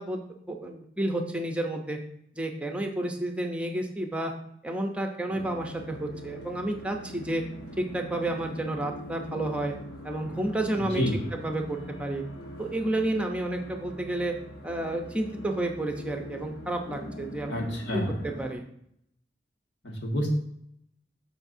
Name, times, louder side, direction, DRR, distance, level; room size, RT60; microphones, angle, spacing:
voice 1, 0.0-2.0 2.3-4.3 4.6-7.4 7.8-9.7 10.0-11.0 11.3-12.2 12.6-14.3 14.6-17.5 17.9-18.6, right 1 dB, 5° right, 3 dB, 0.8 m, -31 dB
sound 1, 5.3-18.5, equal, 55° left, 1.4 m, -43 dB
voice 2, 10.8-11.2 17.5-18.2 19.8-20.3, equal, 80° left, 0 dB, 1.9 m, -29 dB
13.0 x 5.0 x 2.7 m, 0.71 s
head